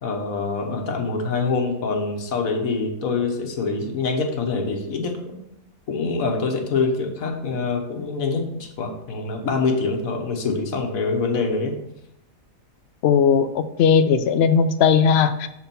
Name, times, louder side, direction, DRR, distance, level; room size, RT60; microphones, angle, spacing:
voice 1, 0.0-5.2 5.9-11.7, left 4 dB, 80° left, 3 dB, 1.5 m, -25 dB
voice 2, 13.0-15.5, left 6 dB, 65° left, 9 dB, 0.7 m, -18 dB
7.1 x 4.4 x 5.2 m, 0.82 s
omnidirectional pair, 1.4 m